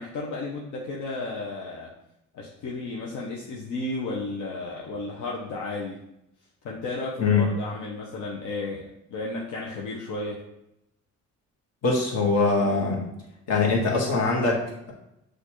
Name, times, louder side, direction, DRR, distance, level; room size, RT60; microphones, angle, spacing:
voice 1, 0.0-1.9 2.3-6.0 6.6-10.4, left 2 dB, 75° left, -3 dB, 0.8 m, -33 dB
voice 2, 11.8-13.1 13.5-14.9, left 4 dB, 55° left, -2 dB, 1.4 m, -23 dB
6.4 x 2.5 x 3.0 m, 0.84 s
cardioid pair, 90°, 30 cm